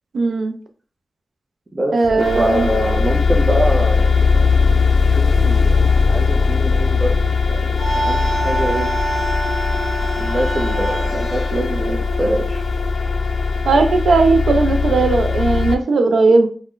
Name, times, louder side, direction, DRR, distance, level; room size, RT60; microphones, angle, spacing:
voice 1, 0.1-0.5 1.9-2.7 13.7-16.5, right 3 dB, 85° right, 6 dB, 0.4 m, -16 dB
voice 2, 1.7-4.4 5.0-5.8 6.1-9.0 10.2-12.6, right 1 dB, 35° right, -3 dB, 0.6 m, -24 dB
sound 1, 2.0-15.8, left 5 dB, 70° left, 0.3 m, -19 dB
sound 2, 7.7-12.9, right 1 dB, 5° left, 0.8 m, -26 dB
2.4 x 2.1 x 3.6 m, 0.41 s
wide cardioid pair, 75°, 0 cm